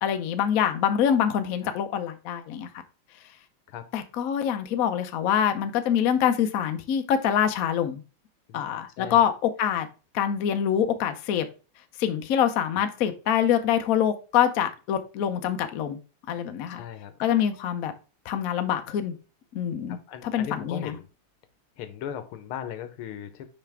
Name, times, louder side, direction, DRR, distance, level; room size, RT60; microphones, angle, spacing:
voice 1, 0.0-2.7 3.9-8.0 8.5-9.9 10.1-11.5 12.0-16.0 16.3-16.8 17.2-17.9 18.3-19.1 19.5-21.0, left 9 dB, 65° left, 0.8 m, -25 dB
voice 2, 8.5-9.2 16.7-17.4 19.9-21.1 21.8-23.5, left 9 dB, 90° left, 1.7 m, -38 dB
5.7 x 5.1 x 3.4 m
omnidirectional pair, 2.3 m